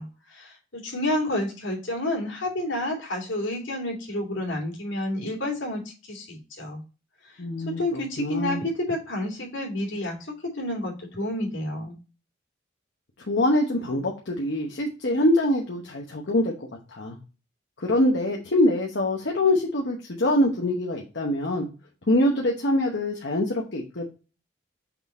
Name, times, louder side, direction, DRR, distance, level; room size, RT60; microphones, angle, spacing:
voice 1, 0.0-6.8 7.6-10.2 10.4-12.0, left 1 dB, 80° left, -1 dB, 2.5 m, -30 dB
voice 2, 7.4-8.6 13.3-16.5 16.9-17.2 17.8-21.7 22.1-24.1, left 1 dB, 65° left, 0 dB, 1.0 m, -24 dB
6.0 x 3.9 x 4.2 m, 0.33 s
head